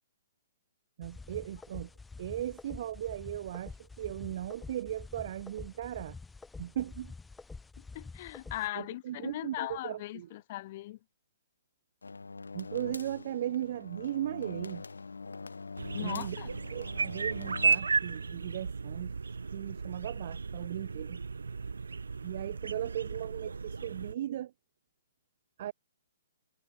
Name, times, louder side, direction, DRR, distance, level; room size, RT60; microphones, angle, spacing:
sound 1, 1.0-8.7, left 4 dB, 5° left, 0.8 m, -47 dB
voice 1, 1.0-1.9 2.2-6.2 6.6-7.1 8.7-10.3 12.5-14.8 16.0-16.4 16.7-19.1 19.5-21.2 22.2-24.5 25.6-25.7, right 12 dB, 50° right, 1.4 m, -37 dB
voice 2, 7.9-11.0 15.9-16.5, left 16 dB, 45° left, 0.8 m, -39 dB
sound 2, 12.0-17.8, left 4 dB, 85° left, 2.9 m, -44 dB
sound 3, 15.8-24.2, right 4 dB, 80° right, 0.5 m, -34 dB
figure-of-eight pair, 130°, 0 cm